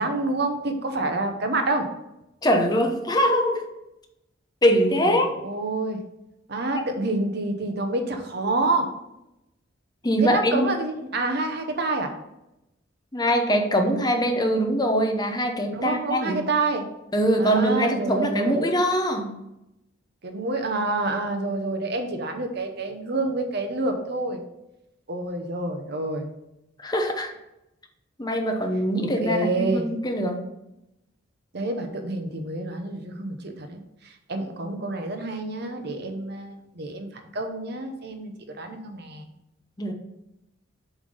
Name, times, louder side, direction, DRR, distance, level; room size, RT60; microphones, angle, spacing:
voice 1, 0.0-1.9 4.9-6.0 6.5-8.9 10.2-12.1 15.7-16.8 17.4-18.6 20.2-24.4 25.1-26.3 29.0-29.9 31.5-37.1 37.3-39.3, right 2 dB, 60° right, 5 dB, 0.9 m, -28 dB
voice 2, 2.4-3.6 4.6-5.3 10.0-10.7 13.1-16.4 17.1-19.4 26.8-27.3 28.2-30.4 39.8-39.9, equal, 20° left, 3 dB, 0.8 m, -23 dB
7.2 x 3.5 x 5.5 m, 0.89 s
head